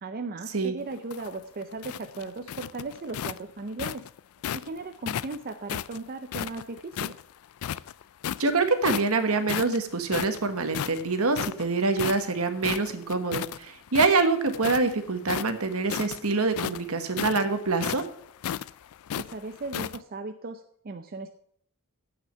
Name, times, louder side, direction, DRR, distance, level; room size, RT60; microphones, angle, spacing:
voice 1, 0.0-4.1 4.5-7.2 19.1-21.3, right 3 dB, 40° right, 7 dB, 0.6 m, -37 dB
sound 1, 0.9-4.7 5.1-7.2 7.6-8.5 8.8-9.2 9.5-13.6 13.9-14.9 15.2-20.0, left 10 dB, 70° left, 0.3 m, -34 dB
voice 2, 8.4-18.0, right 3 dB, 70° right, 9 dB, 1.3 m, -25 dB
8.1 x 6.2 x 7.4 m, 0.67 s
head